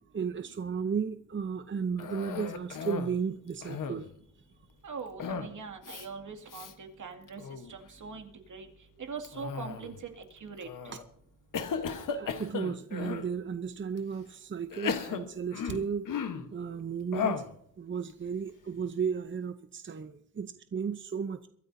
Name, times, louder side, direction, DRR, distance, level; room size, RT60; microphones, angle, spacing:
voice 1, 0.1-4.1 12.1-16.1 16.5-17.4 17.8-21.5, right 6 dB, 40° right, 9 dB, 0.8 m, -34 dB
Cough, 2.0-3.2 3.5-4.2 5.2-5.6 5.8-6.1 6.5-6.7 7.3-7.7 9.2-10.0 10.6-11.0 11.5-13.3 14.0-14.1 14.7-16.5 17.1-17.6, left 6 dB, 90° left, 1.3 m, -35 dB
voice 2, 4.8-7.4 7.7-8.7 9.0-9.9 10.4-10.7, right 5 dB, 75° right, 4 dB, 2.4 m, -42 dB
23.5 x 13.0 x 2.7 m, 0.68 s
cardioid pair, 85°, 31 cm